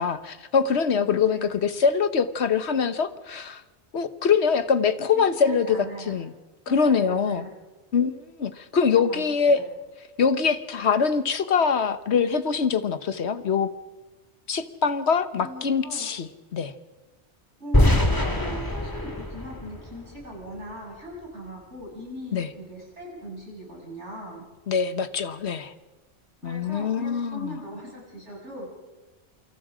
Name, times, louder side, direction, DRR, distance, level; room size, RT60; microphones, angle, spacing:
voice 1, 0.0-3.6 3.9-6.3 6.7-7.5 7.9-9.6 10.2-13.7 14.5-16.7 22.3-22.5 24.7-25.7 26.4-27.6, left 6 dB, 70° left, 12 dB, 1.3 m, -24 dB
voice 2, 1.1-1.5 5.1-6.2 6.7-7.5 8.7-9.2 9.5-9.6 15.4-16.1 17.6-24.4 26.4-28.7, equal, 85° right, -2 dB, 7.5 m, -40 dB
sound 1, 17.7-20.7, left 1 dB, 20° left, 2.1 m, -24 dB
27.5 x 26.0 x 5.0 m, 1.2 s
omnidirectional pair, 1.2 m